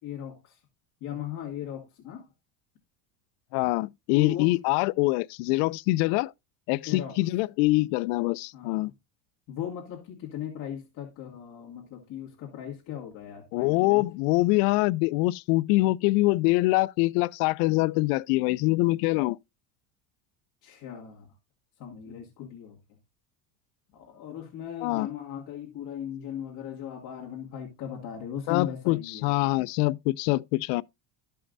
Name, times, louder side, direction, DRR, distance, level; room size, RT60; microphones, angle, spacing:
voice 1, 0.0-0.6 1.0-2.3 4.1-4.5 6.9-7.2 8.5-8.9 9.5-14.1 20.6-21.3 21.8-22.8 23.9-29.3, left 10 dB, 45° left, 2.2 m, -38 dB
voice 2, 3.5-6.3 6.7-8.9 13.5-19.4 24.8-25.1 28.5-30.8, left 21 dB, 85° left, 0.5 m, -24 dB
13.5 x 5.7 x 2.6 m
cardioid pair, 165°, 44 cm